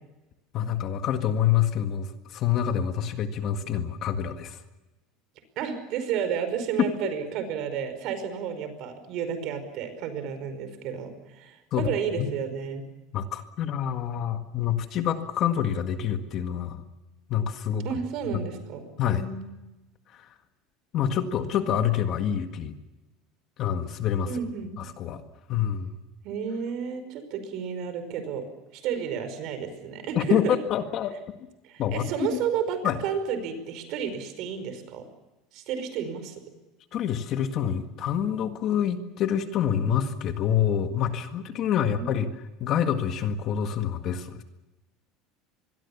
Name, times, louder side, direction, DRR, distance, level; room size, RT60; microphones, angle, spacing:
voice 1, 0.5-4.6 6.8-6.9 11.7-11.9 12.2-12.3 13.1-16.8 17.3-17.9 18.3-18.4 19.0-19.2 20.1-20.3 20.9-22.7 23.6-24.3 24.8-25.2 25.5-25.9 30.2-30.4 30.7-31.1 31.8-32.4 32.8-33.0 36.9-42.3 42.6-44.4, left 9 dB, 35° left, 7 dB, 1.8 m, -27 dB
voice 2, 5.6-12.8 17.8-18.8 19.1-19.5 24.2-24.8 26.2-28.4 28.7-30.6 31.6-35.0 35.5-36.4 41.9-42.3, right 7 dB, 50° right, 10 dB, 5.2 m, -32 dB
25.5 x 22.0 x 7.2 m, 1.0 s
cardioid pair, 165°, 0 cm